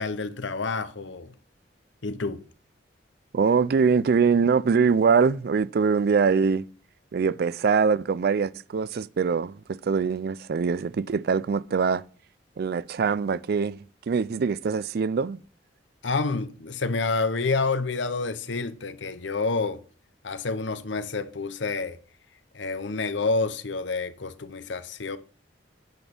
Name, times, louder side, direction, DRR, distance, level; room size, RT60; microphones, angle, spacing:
voice 1, 0.0-1.3 2.0-2.4 16.0-19.8 20.2-22.0 22.5-25.2, left 3 dB, 85° left, 0.8 m, -28 dB
voice 2, 3.3-6.6 7.1-12.0 12.6-15.4, right 5 dB, 55° right, 0.4 m, -23 dB
9.4 x 6.1 x 5.4 m
head